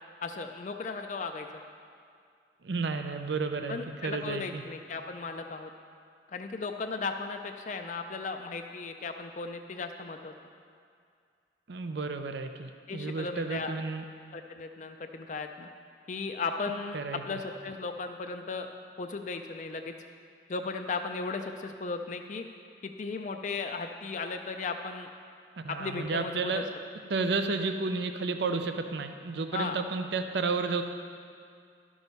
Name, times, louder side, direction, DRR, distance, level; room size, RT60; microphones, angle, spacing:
voice 1, 0.2-1.5 3.7-5.7 6.3-10.3 12.9-13.7 14.3-15.7 16.1-17.0 17.3-18.7 19.0-19.9 20.5-22.4 22.8-25.1 25.7-26.6 29.5-29.8, left 4 dB, 40° left, 5 dB, 0.4 m, -36 dB
voice 2, 2.6-4.6 11.7-14.0 16.9-17.4 25.6-26.6 27.1-30.8, right 4 dB, 65° right, 7 dB, 0.5 m, -32 dB
11.5 x 6.2 x 5.4 m, 2.3 s
head